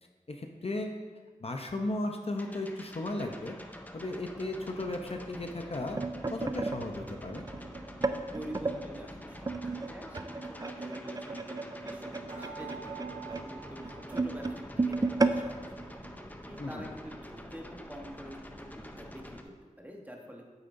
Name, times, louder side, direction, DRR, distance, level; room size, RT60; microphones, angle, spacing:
voice 1, 0.3-0.9 1.4-3.6 3.9-6.0 6.3-7.5 16.6-16.9, left 2 dB, 45° left, 3 dB, 0.6 m, -35 dB
sound 1, 2.4-19.4, left 1 dB, 10° left, 0.6 m, -47 dB
sound 2, 5.5-8.8 9.4-16.7 17.1-17.3 17.6-17.9 18.6-18.7, right 3 dB, 25° right, 0.4 m, -34 dB
voice 2, 8.3-13.8 14.1-16.0 16.4-20.5, equal, 10° right, 1 dB, 1.1 m, -47 dB
sound 3, 12.3-14.8 15.1-16.1 16.6-16.7 16.9-17.1, right 7 dB, 85° right, 2.1 m, -49 dB
9.0 x 6.7 x 2.6 m, 1.5 s
wide cardioid pair, 60°, 14 cm